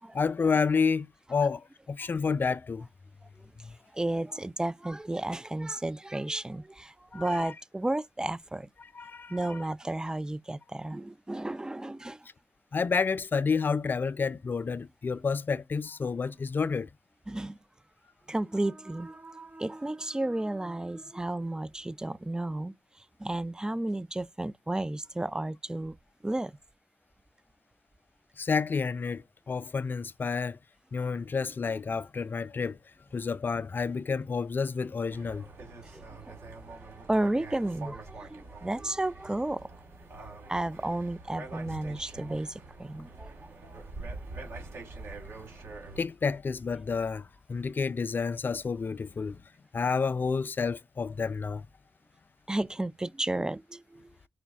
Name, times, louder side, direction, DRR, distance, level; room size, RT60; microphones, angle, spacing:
voice 1, 0.1-2.9 3.6-3.8 7.1-7.5 8.9-9.7 12.7-16.9 28.4-30.6 30.9-32.8 33.1-35.5 46.0-49.4 49.7-51.7, left 5 dB, 45° left, 0.4 m, -30 dB
voice 2, 3.9-8.7 9.3-12.3 17.3-17.6 18.3-19.1 19.6-22.7 23.2-26.0 26.2-26.6 35.9-36.4 37.1-39.7 40.5-43.3 52.5-54.1, right 1 dB, 15° right, 0.4 m, -32 dB
sound 1, 18.2-22.1, right 2 dB, 45° right, 0.9 m, -50 dB
sound 2, 35.1-46.0, right 3 dB, 70° right, 2.2 m, -45 dB
4.9 x 2.2 x 3.5 m
supercardioid pair, 40°, 5 cm